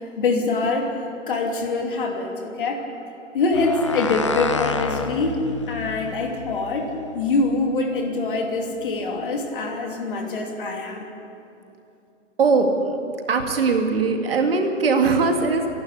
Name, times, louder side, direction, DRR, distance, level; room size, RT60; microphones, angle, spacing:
voice 1, 0.2-0.9 1.3-2.8 3.3-11.1, left 3 dB, 40° left, 2 dB, 2.8 m, -24 dB
sound 1, 3.5-8.2, left 4 dB, 25° left, 0.6 m, -30 dB
voice 2, 12.4-12.9 13.3-15.7, right 4 dB, 45° right, 3 dB, 2.3 m, -20 dB
28.5 x 12.0 x 8.4 m, 2.8 s
hypercardioid pair, 165°, 39 cm